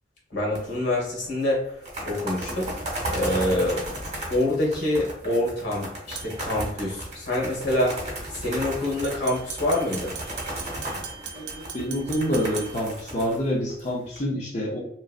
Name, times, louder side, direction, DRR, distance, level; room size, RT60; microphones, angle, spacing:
voice 1, 0.3-1.7 2.0-2.7 3.1-3.8 4.3-8.0 8.3-10.1, left 1 dB, 80° left, -3 dB, 1.4 m, -26 dB
sound 1, 0.6-1.0 1.2-1.3 1.7-14.2, right 1 dB, 40° right, 1.1 m, -35 dB
sound 2, 3.3-3.7 6.2-6.6 9.0-13.0, right 6 dB, 80° right, 0.5 m, -40 dB
voice 2, 11.3-14.8, equal, 40° left, -4 dB, 0.6 m, -27 dB
3.0 x 2.5 x 2.4 m, 0.73 s
head